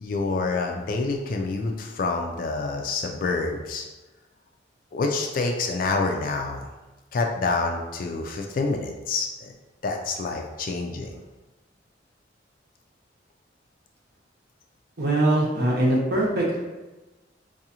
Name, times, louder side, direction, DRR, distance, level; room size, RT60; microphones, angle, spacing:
voice 1, 0.0-3.9 4.9-6.7 7.1-9.5 9.8-11.2, left 3 dB, 50° left, 2 dB, 0.3 m, -27 dB
voice 2, 15.0-16.4, right 1 dB, 60° right, -4 dB, 1.0 m, -22 dB
4.7 x 2.4 x 2.8 m, 1.1 s
head